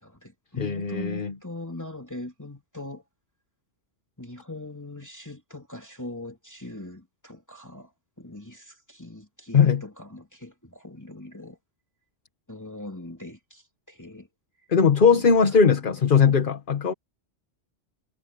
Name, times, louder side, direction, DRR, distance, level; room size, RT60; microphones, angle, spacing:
voice 1, 0.0-3.0 4.2-7.9 8.2-11.6 12.5-13.6 13.9-14.3 15.0-15.5, left 2 dB, 15° left, 3.0 m, -41 dB
voice 2, 0.6-1.3 9.5-9.8 14.7-16.9, left 6 dB, 50° left, 1.2 m, -19 dB
omnidirectional pair, 1.2 m